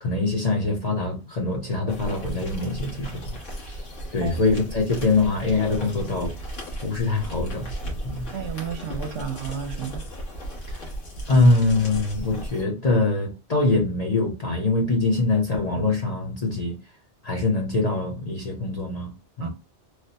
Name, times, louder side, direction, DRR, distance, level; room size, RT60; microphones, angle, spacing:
voice 1, 0.0-3.2 3.7-3.8 4.1-6.3 6.8-7.7 8.0-8.3 11.3-16.8 17.2-19.1 19.4-19.5, left 3 dB, 40° left, 0.7 m, -23 dB
sound 1, 1.9-12.6, right 1 dB, 90° left, 1.5 m, -35 dB
voice 2, 8.3-10.1 19.4-19.5, right 8 dB, 70° right, 0.9 m, -32 dB
3.3 x 2.1 x 2.8 m
omnidirectional pair, 1.2 m